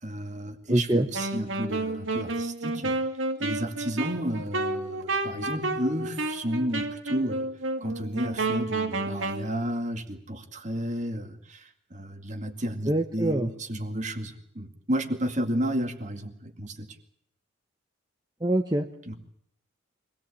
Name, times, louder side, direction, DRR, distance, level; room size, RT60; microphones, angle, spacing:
voice 1, 0.0-2.9 3.4-7.5 7.8-16.9 19.1-19.2, equal, 35° right, 5 dB, 2.2 m, -32 dB
voice 2, 0.7-1.1 12.9-13.5 18.4-18.8, right 1 dB, 20° right, 4 dB, 1.2 m, -24 dB
Wind instrument woodwind instrument, 1.1-9.5, right 2 dB, 70° right, 2.3 m, -30 dB
24.5 x 18.0 x 8.5 m, 0.68 s
head